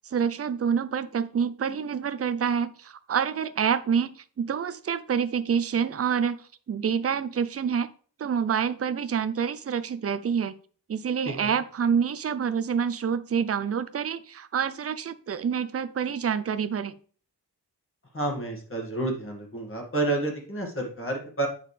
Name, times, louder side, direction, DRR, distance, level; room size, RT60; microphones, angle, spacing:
voice 1, 0.0-6.4 6.7-7.9 8.2-10.5 10.9-16.9, right 7 dB, 35° right, 13 dB, 0.5 m, -27 dB
voice 2, 18.1-21.5, right 2 dB, 30° left, 1 dB, 1.9 m, -30 dB
8.4 x 6.3 x 3.3 m, 0.43 s
wide cardioid pair, 165°, 40 cm